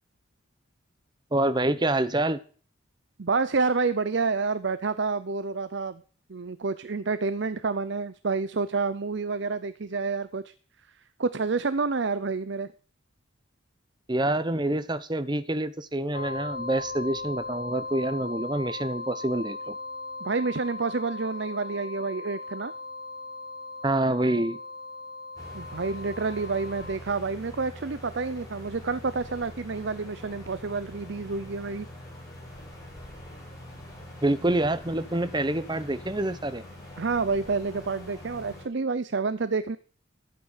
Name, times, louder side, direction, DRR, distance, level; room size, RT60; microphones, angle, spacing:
voice 1, 1.3-2.4 14.1-19.7 23.8-24.6 34.2-36.6, right 1 dB, 20° right, 13 dB, 0.9 m, -27 dB
voice 2, 3.2-6.0 6.3-10.5 11.2-12.7 20.2-22.7 25.5-31.9 37.0-39.8, right 4 dB, 55° right, 14 dB, 0.6 m, -29 dB
sound 1, 16.1-27.0, left 3 dB, 45° left, 2.5 m, -38 dB
sound 2, 25.3-38.6, left 1 dB, 20° left, 6.5 m, -44 dB
14.0 x 9.1 x 6.5 m, 0.42 s
head